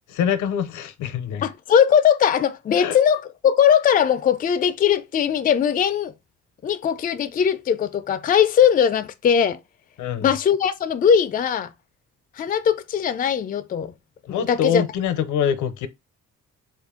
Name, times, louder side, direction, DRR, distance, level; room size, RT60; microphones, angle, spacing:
voice 1, 0.1-1.4 2.7-3.0 10.0-10.3 14.3-15.9, left 8 dB, 75° left, 0.6 m, -24 dB
voice 2, 1.4-6.1 6.6-9.6 10.2-11.7 12.4-13.9 14.3-14.8, left 8 dB, 30° left, 0.4 m, -20 dB
3.3 x 2.5 x 3.6 m
cardioid pair, 90°, 30 cm